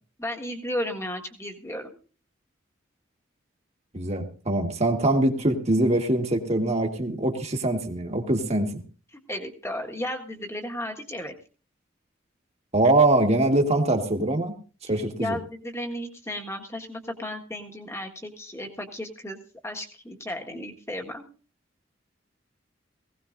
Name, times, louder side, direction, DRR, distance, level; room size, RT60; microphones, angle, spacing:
voice 1, 0.2-1.9 9.1-11.3 15.2-19.4 19.6-21.2, left 1 dB, 15° left, 2 dB, 1.6 m, -34 dB
voice 2, 3.9-8.7 12.7-14.5 14.9-15.4, right 2 dB, 35° right, 3 dB, 1.6 m, -23 dB
19.0 x 17.0 x 2.6 m, 0.38 s
head